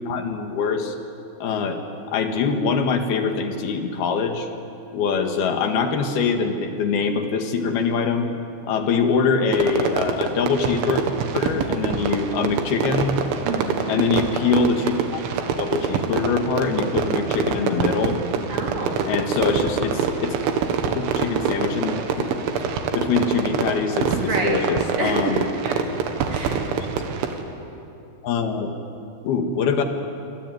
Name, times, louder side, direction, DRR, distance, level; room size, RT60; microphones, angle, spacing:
voice 1, 0.1-1.0 1.4-1.8 2.1-4.5 4.9-8.3 8.7-11.0 11.3-13.2 13.9-15.2 15.6-18.2 19.1-20.4 21.0-22.6 22.9-25.4 26.8-27.0 28.2-28.8 29.2-29.8, left 5 dB, 60° left, 5 dB, 3.4 m, -23 dB
Fireworks, 9.5-27.4, right 6 dB, 85° right, 4.2 m, -25 dB
voice 2, 13.5-13.9 18.5-19.1 24.1-24.6 25.0-25.3 25.6-25.7 26.3-26.7, right 3 dB, 50° right, 0 dB, 3.9 m, -28 dB
26.0 x 24.0 x 9.3 m, 2.8 s
omnidirectional pair, 5.4 m